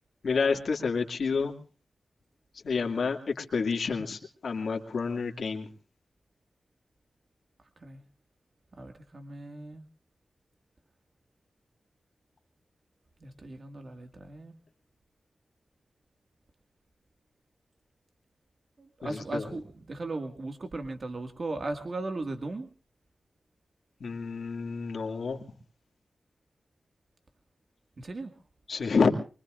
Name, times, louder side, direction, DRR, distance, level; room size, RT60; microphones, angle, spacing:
voice 1, 0.2-1.5 2.6-5.7 19.0-19.4 24.0-25.4 28.7-29.1, left 5 dB, 70° left, 4 dB, 2.3 m, -29 dB
voice 2, 8.8-9.9 13.2-14.6 18.8-22.7 28.0-28.3, right 2 dB, 45° right, 5 dB, 2.0 m, -37 dB
23.5 x 23.5 x 2.5 m, 0.38 s
wide cardioid pair, 155°, 0 cm